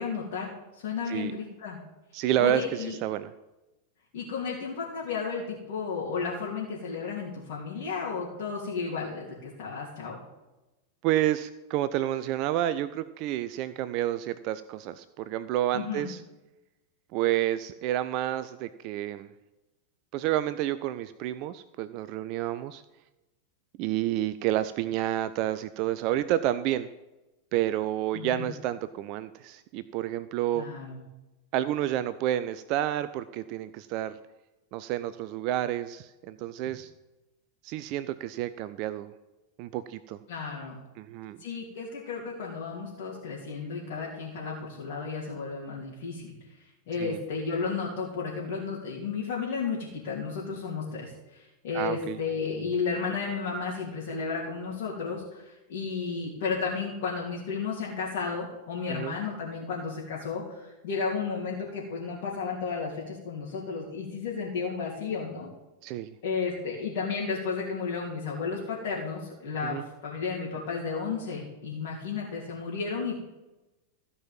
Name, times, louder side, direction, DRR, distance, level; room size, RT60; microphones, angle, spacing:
voice 1, 0.0-1.8 2.4-3.0 4.1-10.2 15.7-16.1 28.1-28.5 30.5-31.0 40.3-40.8 41.4-46.3 46.6-65.5 66.2-73.2, left 5 dB, 50° left, -5 dB, 2.9 m, -33 dB
voice 2, 2.1-3.3 11.0-16.2 17.1-19.3 20.1-22.8 23.8-26.9 27.5-30.7 31.5-34.2 34.7-36.9 37.6-39.1 39.6-40.2 41.0-41.4 47.0-47.2 51.7-52.2 58.9-59.1 65.8-66.1 69.6-69.9, right 13 dB, 40° right, 14 dB, 0.4 m, -29 dB
15.0 x 5.5 x 7.3 m, 1.0 s
figure-of-eight pair, 90°, 0 cm